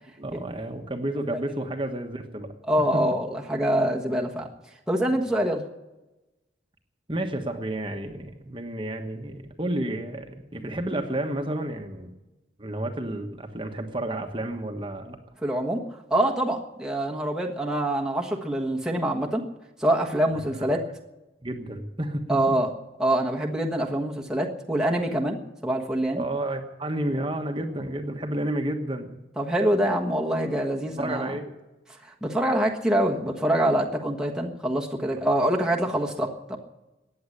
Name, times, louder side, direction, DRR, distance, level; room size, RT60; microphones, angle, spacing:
voice 1, 0.2-2.5 2.9-3.0 7.1-12.1 12.6-15.2 20.6-20.7 21.4-22.6 26.1-29.2 31.0-31.5, right 1 dB, 25° right, 4 dB, 1.3 m, -31 dB
voice 2, 2.7-4.5 4.9-5.6 15.4-15.8 16.1-19.4 19.8-20.8 22.3-22.7 23.0-25.4 25.6-26.2 29.4-31.4 32.0-36.6, right 1 dB, 5° right, -1 dB, 1.3 m, -25 dB
15.0 x 9.6 x 9.9 m, 1.0 s
head